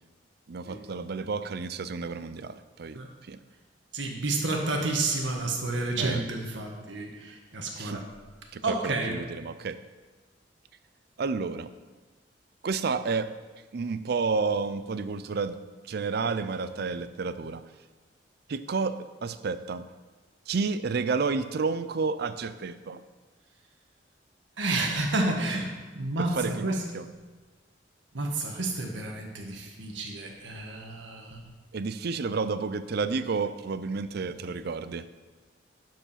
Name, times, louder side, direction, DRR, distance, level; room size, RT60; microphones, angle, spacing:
voice 1, 0.5-3.4 6.0-6.2 7.7-8.1 8.5-9.8 11.2-11.7 12.6-13.3 13.7-15.6 15.8-17.6 18.5-19.8 20.5-23.0 26.2-27.1 31.7-35.1, right 4 dB, 60° right, 13 dB, 0.5 m, -31 dB
voice 2, 3.9-8.0 8.6-9.2 24.6-26.8 28.1-31.4, right 2 dB, 80° right, 2 dB, 1.6 m, -30 dB
11.5 x 4.8 x 5.7 m, 1.3 s
head